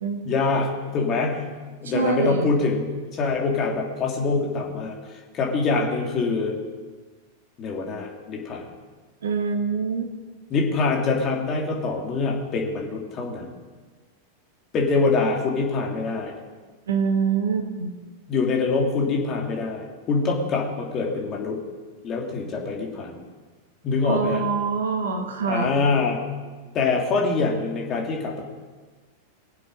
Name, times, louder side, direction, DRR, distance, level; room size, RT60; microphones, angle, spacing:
voice 1, 0.2-1.5 1.8-6.6 7.6-8.6 10.5-13.5 14.7-16.3 18.3-21.6 22.0-23.2 23.8-24.4 25.4-26.2 26.7-28.5, left 4 dB, 30° left, 0 dB, 2.9 m, -24 dB
voice 2, 1.9-2.5 9.2-10.1 16.9-17.9 24.0-25.7, right 5 dB, 65° right, 6 dB, 1.7 m, -25 dB
22.5 x 7.6 x 5.2 m, 1.4 s
figure-of-eight pair, 90°, 0 cm